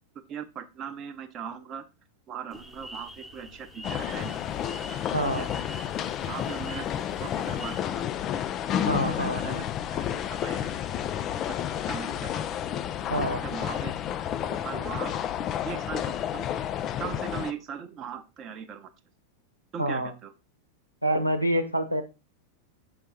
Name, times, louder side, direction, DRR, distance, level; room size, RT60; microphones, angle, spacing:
voice 1, 0.1-1.9 2.3-4.3 5.4-5.5 6.2-6.9 7.2-8.0 8.8-8.9 9.2-9.7 10.1-10.8 11.5-11.6 11.9-12.5 13.4-13.9 14.4-15.1 15.6-16.5 17.0-18.9 19.7-20.3, right 7 dB, 30° right, 7 dB, 0.8 m, -39 dB
sound 1, 2.5-7.8, equal, ahead, 0.9 m, -45 dB
sound 2, 3.8-17.5, left 10 dB, 30° left, 0.4 m, -31 dB
voice 2, 5.1-5.5 8.9-9.6 13.1-13.4 19.8-20.1 21.0-22.0, right 1 dB, 90° right, 9 dB, 0.9 m, -27 dB
5.9 x 5.5 x 4.0 m, 0.28 s
figure-of-eight pair, 90°, 0 cm